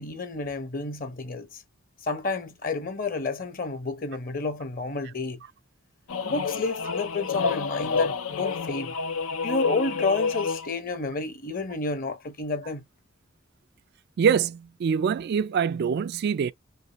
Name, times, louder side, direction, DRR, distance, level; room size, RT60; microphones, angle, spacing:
voice 1, 0.0-1.6 2.0-5.4 6.2-8.9 9.3-12.8, left 3 dB, 45° left, 0.9 m, -30 dB
sound 1, 6.1-10.8, left 5 dB, 90° left, 0.6 m, -29 dB
voice 2, 14.2-16.5, right 7 dB, 50° right, 0.3 m, -24 dB
5.1 x 2.3 x 2.9 m
head